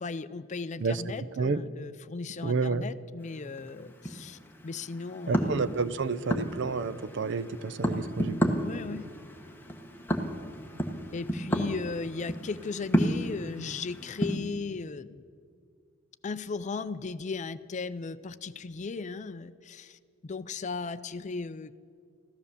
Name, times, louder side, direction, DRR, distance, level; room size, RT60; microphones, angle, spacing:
voice 1, 0.0-5.6 8.6-9.1 11.1-15.2 16.2-21.7, left 4 dB, 35° left, 14 dB, 0.5 m, -37 dB
voice 2, 2.4-2.8 5.3-8.5, right 4 dB, 60° right, 15 dB, 0.5 m, -30 dB
sound 1, 3.2-14.4, equal, 10° left, 1.2 m, -33 dB
14.5 x 13.0 x 7.0 m, 2.2 s
head